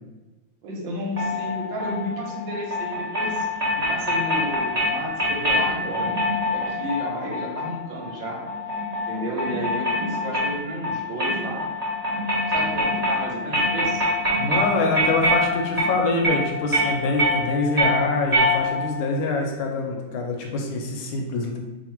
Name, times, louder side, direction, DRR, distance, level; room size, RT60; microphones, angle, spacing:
voice 1, 0.6-3.5 3.8-8.4 9.1-11.7 12.5-14.0, right 1 dB, 75° right, -1 dB, 1.4 m, -32 dB
sound 1, 1.2-19.0, left 1 dB, 55° right, 0.4 m, -25 dB
voice 2, 14.4-21.6, left 3 dB, 75° left, 2 dB, 1.3 m, -25 dB
3.2 x 2.4 x 4.3 m, 1.1 s
omnidirectional pair, 2.3 m